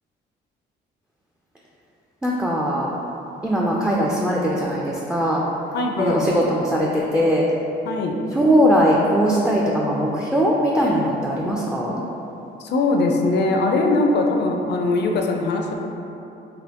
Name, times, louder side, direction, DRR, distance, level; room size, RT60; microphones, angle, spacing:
voice 1, 2.2-2.9 3.4-5.5 6.0-7.4 8.4-12.0, equal, 5° right, -4 dB, 0.3 m, -20 dB
voice 2, 5.7-6.4 7.9-8.2 12.6-15.7, left 2 dB, 60° left, 2 dB, 0.5 m, -21 dB
4.2 x 2.9 x 2.9 m, 3.0 s
cardioid pair, 90°, 20 cm